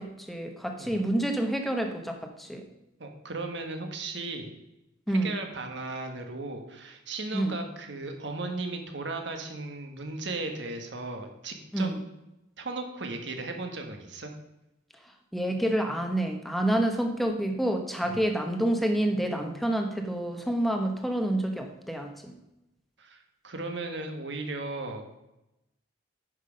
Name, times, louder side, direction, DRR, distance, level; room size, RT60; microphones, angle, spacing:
voice 1, 0.0-2.6 5.1-5.3 7.3-7.6 11.7-12.0 15.3-22.4, right 1 dB, ahead, 4 dB, 1.0 m, -28 dB
voice 2, 3.0-4.5 5.1-11.9 12.6-14.3 18.0-18.2 23.0-25.0, right 3 dB, 60° right, 4 dB, 1.4 m, -36 dB
9.6 x 6.2 x 5.1 m, 0.91 s
head